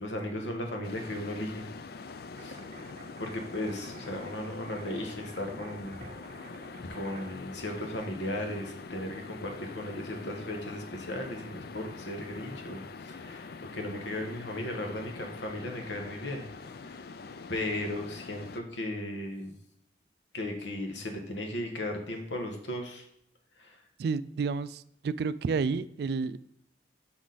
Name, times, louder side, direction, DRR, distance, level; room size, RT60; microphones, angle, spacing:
voice 1, 0.0-1.7 2.4-2.9 3.2-6.1 6.8-16.5 16.8-17.0 17.5-19.5 20.3-23.1 23.6-23.8, left 1 dB, 85° left, 1.3 m, -36 dB
sound 1, 0.8-18.6, left 4 dB, 55° left, 0.4 m, -44 dB
sound 2, 2.4-7.3, right 3 dB, 40° right, 0.7 m, -50 dB
voice 2, 24.0-26.4, right 4 dB, 60° right, 0.3 m, -30 dB
6.2 x 6.0 x 3.9 m
head